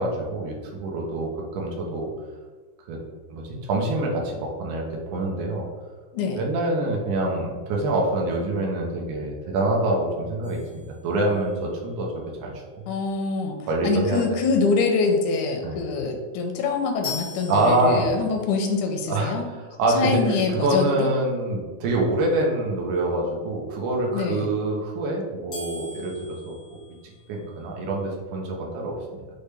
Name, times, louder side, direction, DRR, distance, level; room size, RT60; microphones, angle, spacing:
voice 1, 0.0-2.1 2.9-3.0 3.3-4.9 5.1-5.7 6.3-12.8 13.7-14.4 15.6-15.8 17.5-18.1 19.1-19.4 19.8-26.8 27.0-29.2, right 2 dB, 85° right, -1 dB, 2.3 m, -25 dB
sound 1, 10.4-11.7 17.0-18.5 25.5-27.6, left 4 dB, 55° left, 0.5 m, -40 dB
voice 2, 12.9-19.5 19.9-21.1 24.1-24.5, left 4 dB, 85° left, 3 dB, 2.0 m, -25 dB
6.4 x 2.1 x 3.3 m, 1.3 s
omnidirectional pair, 3.5 m